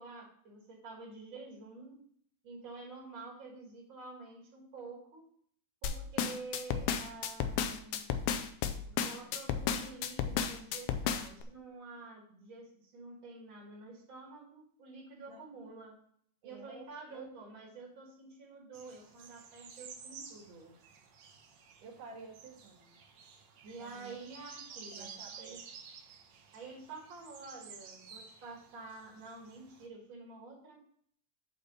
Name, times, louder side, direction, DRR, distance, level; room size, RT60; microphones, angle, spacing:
voice 1, 0.0-2.0 2.4-5.3 5.8-8.3 8.9-16.0 16.4-20.7 23.6-25.7 26.5-30.8, right 3 dB, 45° right, -1 dB, 2.2 m, -49 dB
sound 1, 5.8-11.4, left 8 dB, 85° left, 2.1 m, -33 dB
voice 2, 16.4-17.4 21.8-22.9 23.8-24.2 24.7-25.6, right 5 dB, 80° right, 0 dB, 3.3 m, -51 dB
sound 2, 18.7-29.9, right 6 dB, 65° right, 2.2 m, -52 dB
8.3 x 4.4 x 6.6 m, 0.63 s
omnidirectional pair, 3.5 m